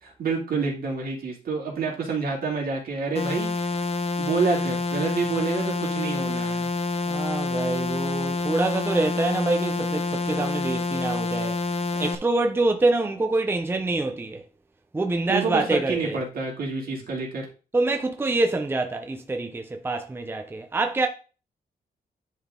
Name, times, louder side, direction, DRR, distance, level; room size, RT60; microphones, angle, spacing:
voice 1, 0.0-3.7 4.2-6.7 15.3-17.5, right 4 dB, 70° right, 2.7 m, -28 dB
sound 1, 3.1-12.1, left 3 dB, 40° left, 0.7 m, -27 dB
voice 2, 7.1-11.6 11.9-14.4 14.9-16.2 17.7-21.1, right 2 dB, 15° right, 0.6 m, -26 dB
10.0 x 4.0 x 3.7 m
wide cardioid pair, 140°, 16 cm